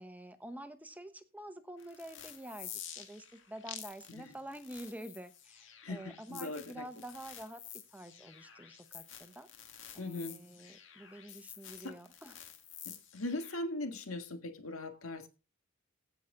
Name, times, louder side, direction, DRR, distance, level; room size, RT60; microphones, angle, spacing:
voice 1, 0.0-7.6 7.9-9.5 9.9-12.4, right 1 dB, 5° right, 0.9 m, -48 dB
sound 1, 1.8-13.6, left 9 dB, 60° left, 2.1 m, -50 dB
voice 2, 5.8-6.9 10.0-10.8 11.8-12.0 12.9-15.3, left 2 dB, 80° left, 1.8 m, -40 dB
16.5 x 6.0 x 3.9 m
head